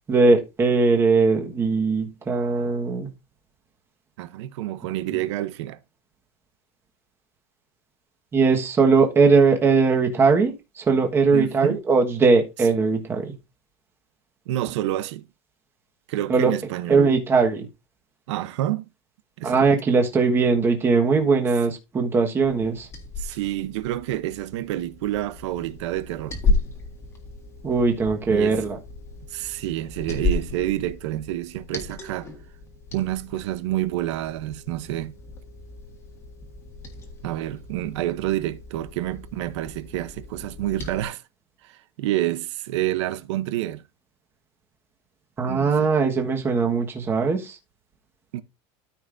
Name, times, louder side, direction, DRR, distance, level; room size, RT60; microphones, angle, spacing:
voice 1, 0.1-3.1 8.3-13.3 16.3-16.5 16.9-17.7 19.4-22.9 27.6-28.8 45.4-47.6, right 4 dB, 15° right, 1.3 m, -20 dB
voice 2, 4.2-5.8 11.3-11.8 14.5-15.3 16.1-17.2 18.3-18.9 19.4-19.6 23.2-26.4 28.3-28.6 29.3-32.3 32.9-35.1 37.2-41.2 41.6-43.8 45.5-45.9 48.3-48.4, right 14 dB, 85° right, 0.8 m, -28 dB
Liquid, 22.4-41.0, left 3 dB, 20° left, 1.5 m, -34 dB
13.5 x 5.4 x 2.6 m
cardioid pair, 170°, 14 cm